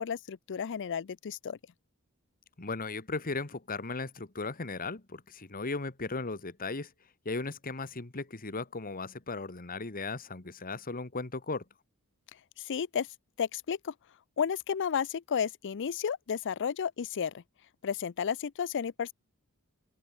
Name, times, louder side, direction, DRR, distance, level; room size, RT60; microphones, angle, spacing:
voice 1, 0.0-1.6 12.6-13.1 13.4-13.9 14.4-17.4 17.8-19.1, left 7 dB, 55° left, 0.5 m, -32 dB
voice 2, 2.6-6.9 7.2-11.6, left 3 dB, 40° left, 1.6 m, -36 dB
open air
head